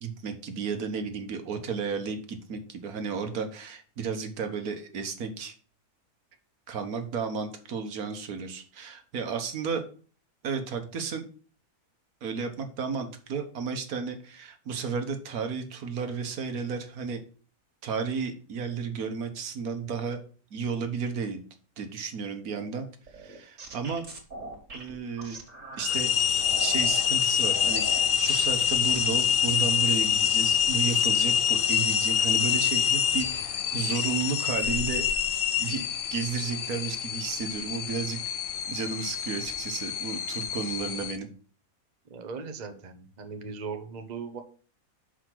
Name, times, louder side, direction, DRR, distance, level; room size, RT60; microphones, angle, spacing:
voice 1, 0.0-5.5 6.7-9.8 10.4-11.2 12.2-17.2 17.8-20.2 20.5-21.4 21.8-24.0 24.7-25.4 25.8-26.1 26.6-35.1 35.6-38.2 38.7-41.3, right 5 dB, 80° right, 6 dB, 1.6 m, -33 dB
sound 1, 23.1-26.0 26.4-27.1 27.5-31.7 32.0-32.7 33.1-33.4, right 2 dB, 60° right, 2.2 m, -43 dB
sound 2, 25.8-41.2, left 8 dB, 75° left, 0.5 m, -26 dB
voice 2, 42.1-44.4, right 5 dB, 35° right, 7 dB, 0.9 m, -38 dB
6.4 x 4.9 x 6.0 m, 0.40 s
omnidirectional pair, 1.5 m